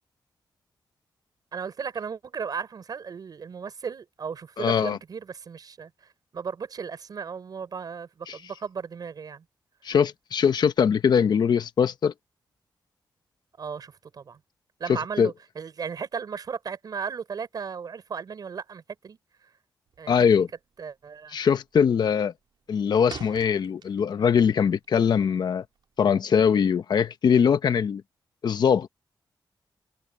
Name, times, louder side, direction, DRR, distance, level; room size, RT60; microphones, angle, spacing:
voice 1, 1.5-9.4 13.6-14.4 14.8-19.2 20.0-20.2 20.8-21.4, right 6 dB, 55° right, 5.1 m, -36 dB
voice 2, 4.6-5.0 8.3-8.4 9.8-12.1 14.9-15.3 20.1-20.5 21.3-22.3 22.7-25.6 26.0-28.0 28.4-28.9, left 7 dB, 65° left, 1.1 m, -22 dB
sound 1, 19.9-20.3 20.6-20.9 21.2-21.7 22.0-24.4 24.7-26.1, right 7 dB, 75° right, 3.5 m, -45 dB
wide cardioid pair, 130°, 8 cm